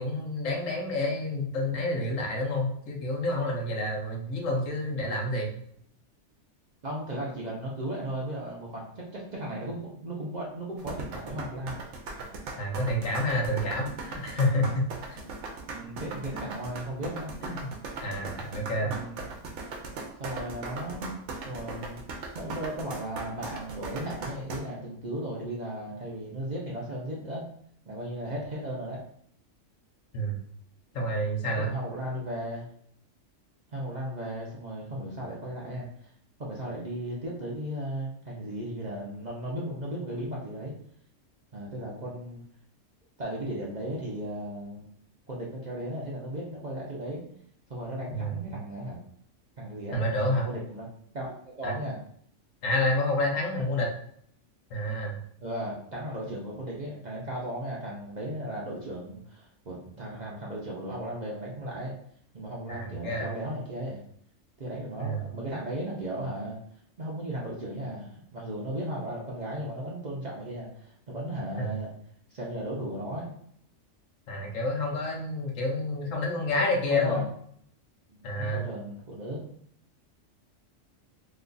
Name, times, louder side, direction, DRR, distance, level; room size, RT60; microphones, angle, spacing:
voice 1, 0.0-5.5 12.6-15.2 16.3-16.4 17.4-17.7 18.0-18.9 30.1-30.4 30.9-31.7 48.1-48.5 49.9-50.5 51.6-51.7 52.6-53.9 54.7-55.2 62.7-63.3 65.0-65.3 71.6-71.7 74.3-77.2 78.2-78.6, left 1 dB, 75° left, 0 dB, 1.1 m, -29 dB
voice 2, 6.8-11.8 15.7-17.3 18.8-19.2 20.2-21.1 21.5-22.0 22.3-27.4 27.9-29.0 31.6-32.7 33.7-36.1 36.4-40.7 41.5-42.4 43.2-44.9 45.3-47.2 47.7-49.0 49.6-50.0 50.4-50.9 51.1-52.0 55.4-61.9 62.3-64.0 64.6-66.6 67.0-71.9 72.3-73.3 76.9-77.3 78.1-79.5, right 1 dB, 45° right, -4 dB, 0.6 m, -36 dB
sound 1, 10.8-24.6, right 3 dB, 70° right, 0.9 m, -38 dB
3.0 x 2.3 x 3.8 m, 0.64 s
omnidirectional pair, 1.3 m